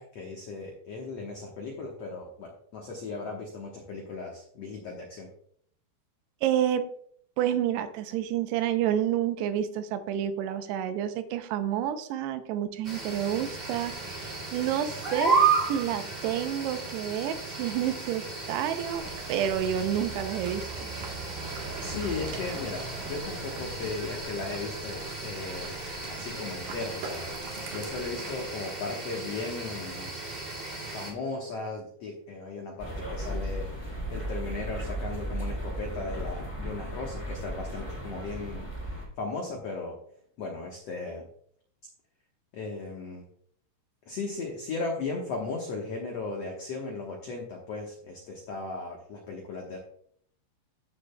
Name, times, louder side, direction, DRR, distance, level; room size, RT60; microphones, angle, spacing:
voice 1, 0.0-5.3 21.8-25.8 26.1-30.1 30.9-33.7 34.1-40.0 40.4-41.3 42.5-43.2 44.1-49.8, left 3 dB, 80° left, 0 dB, 1.4 m, -36 dB
voice 2, 6.4-6.9 7.4-20.9, right 10 dB, 85° right, 10 dB, 2.8 m, -29 dB
sound 1, 12.8-31.1, right 4 dB, 25° right, 1.3 m, -34 dB
sound 2, 18.9-28.4, right 2 dB, 60° right, 2.3 m, -42 dB
sound 3, 32.8-39.0, right 1 dB, 10° left, 2.1 m, -35 dB
14.5 x 6.7 x 2.2 m, 0.62 s
omnidirectional pair, 4.8 m